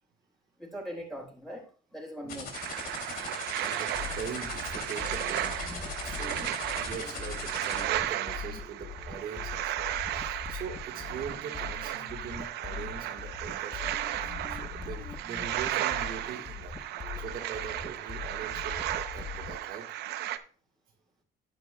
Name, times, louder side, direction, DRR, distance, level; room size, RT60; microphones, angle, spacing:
voice 1, 0.6-2.5 6.1-6.5, equal, 5° left, -1 dB, 3.9 m, -41 dB
sound 1, 2.3-7.8, left 5 dB, 60° left, 2.7 m, -40 dB
sound 2, 2.5-20.4, right 13 dB, 80° right, 0.6 m, -35 dB
voice 2, 2.8-3.1 3.5-5.6 6.0-16.7 17.2-19.9, right 7 dB, 60° right, 2 dB, 1.5 m, -42 dB
sound 3, 3.9-19.6, left 5 dB, 25° left, 1.0 m, -42 dB
11.0 x 9.0 x 2.2 m, 0.39 s
cardioid pair, 110°, 17 cm